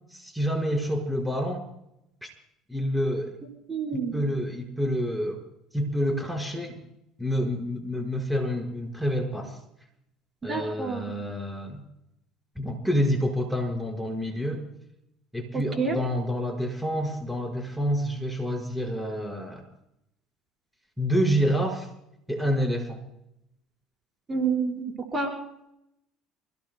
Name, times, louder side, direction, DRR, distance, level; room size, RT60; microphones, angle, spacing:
voice 1, 0.1-1.6 2.2-2.3 2.7-3.4 3.9-5.4 5.7-6.9 7.2-9.6 10.4-11.8 12.6-14.6 15.3-19.7 21.0-21.9 22.3-23.0, equal, ahead, 1 dB, 5.4 m, -28 dB
voice 2, 3.7-4.2 10.4-11.1 15.5-16.0 24.3-24.8 25.1-25.3, right 5 dB, 30° right, 0 dB, 4.8 m, -28 dB
29.0 x 17.5 x 2.3 m, 0.79 s
hypercardioid pair, 65°, 0 cm